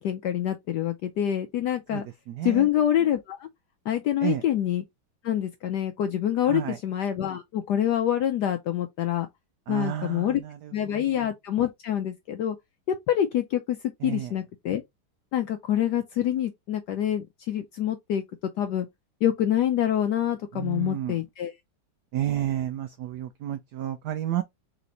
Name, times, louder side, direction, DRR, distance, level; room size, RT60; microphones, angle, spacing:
voice 1, 0.0-2.1 2.4-3.5 3.9-4.8 5.2-9.3 9.7-10.4 10.7-12.6 12.9-14.8 15.3-18.2 18.6-18.9 19.2-21.5, left 11 dB, 75° left, 0.9 m, -26 dB
voice 2, 1.9-2.7 4.2-4.4 6.4-6.8 9.7-11.0 14.0-14.3 20.5-21.2 22.1-24.4, right 12 dB, 80° right, 0.9 m, -31 dB
4.2 x 3.0 x 3.8 m
omnidirectional pair, 2.3 m